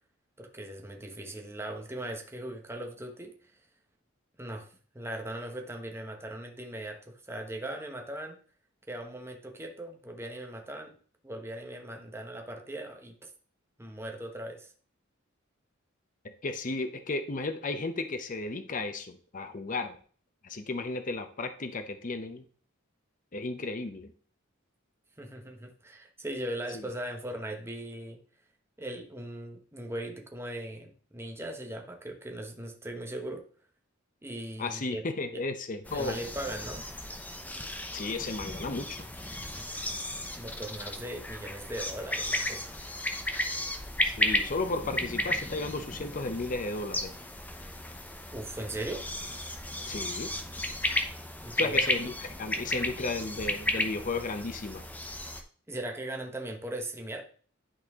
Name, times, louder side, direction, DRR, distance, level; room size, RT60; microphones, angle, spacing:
voice 1, 0.4-3.5 4.4-4.7 4.9-8.4 8.9-10.9 11.2-13.3 13.8-14.7 25.2-28.2 28.8-33.4 34.2-35.0 35.3-35.4 35.9-36.9 40.4-42.7 48.3-49.0 51.4-51.8 55.7-57.2, right 1 dB, 10° right, 3 dB, 1.1 m, -39 dB
voice 2, 16.4-20.0 20.4-22.4 23.3-24.1 34.6-36.2 37.9-39.1 44.0-47.1 49.9-50.3 51.6-54.8, left 3 dB, 40° left, 7 dB, 0.7 m, -34 dB
sound 1, 35.8-55.4, left 1 dB, 10° left, 0.8 m, -34 dB
11.0 x 4.2 x 3.6 m, 0.44 s
head